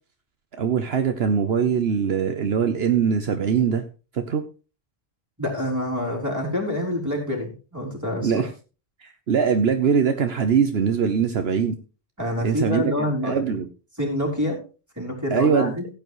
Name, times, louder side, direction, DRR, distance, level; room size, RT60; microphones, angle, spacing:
voice 1, 0.6-3.8 4.1-4.4 8.2-8.5 9.0-11.8 12.4-12.9 13.2-13.7 15.3-15.7, right 7 dB, 70° right, 7 dB, 1.1 m, -22 dB
voice 2, 5.4-8.5 12.2-13.5 14.0-14.6 15.0-15.9, left 1 dB, 15° right, -1 dB, 4.1 m, -27 dB
15.5 x 9.2 x 3.1 m, 0.33 s
omnidirectional pair, 1.1 m